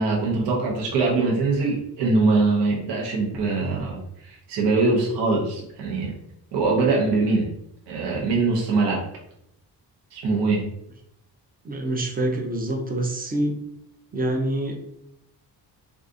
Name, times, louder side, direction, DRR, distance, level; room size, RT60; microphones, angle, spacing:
voice 1, 0.0-6.1 6.5-7.5 7.9-9.0 10.1-10.7, right 3 dB, 90° right, -2 dB, 0.8 m, -22 dB
voice 2, 11.6-13.6 14.1-14.7, right 1 dB, 25° right, 1 dB, 0.4 m, -26 dB
3.6 x 2.4 x 2.5 m, 0.77 s
wide cardioid pair, 150°, 40 cm